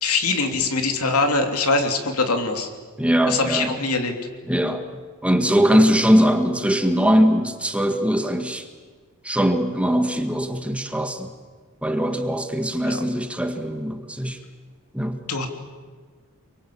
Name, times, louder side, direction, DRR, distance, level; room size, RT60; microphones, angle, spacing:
voice 1, 0.0-2.7 3.3-4.1 12.8-13.0 15.3-15.5, left 3 dB, 75° left, 5 dB, 3.2 m, -22 dB
voice 2, 3.0-3.7 4.5-4.8 5.2-8.7 9.2-11.3 11.8-14.4 14.9-15.2, equal, 5° right, 6 dB, 1.9 m, -21 dB
28.5 x 23.5 x 8.7 m, 1.5 s
head